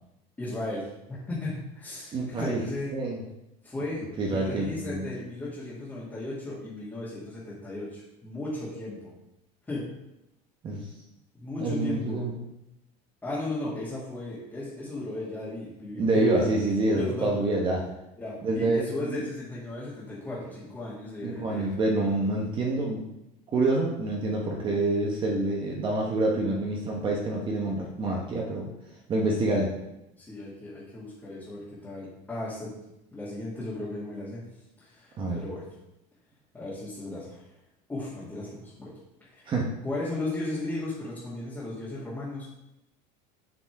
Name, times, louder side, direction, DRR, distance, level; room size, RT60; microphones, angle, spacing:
voice 1, 0.4-2.9 3.6-4.0 4.3-9.1 9.7-9.9 11.4-12.2 13.2-16.5 16.9-17.6 18.2-21.8 30.2-32.7 33.1-34.4 34.8-35.6 36.5-37.5 37.9-38.9 39.2-39.5 39.8-42.5, left 2 dB, 10° left, -9 dB, 2.0 m, -36 dB
voice 2, 2.1-2.6 2.9-3.2 4.2-5.1 10.6-10.9 11.6-12.4 16.0-17.8 18.4-18.8 19.1-19.2 21.2-23.1 23.5-28.7 29.1-29.7 35.2-35.4 39.5-39.7, right 2 dB, 30° right, -1 dB, 1.1 m, -27 dB
7.8 x 4.1 x 4.7 m, 0.89 s
cardioid pair, 150°, 18 cm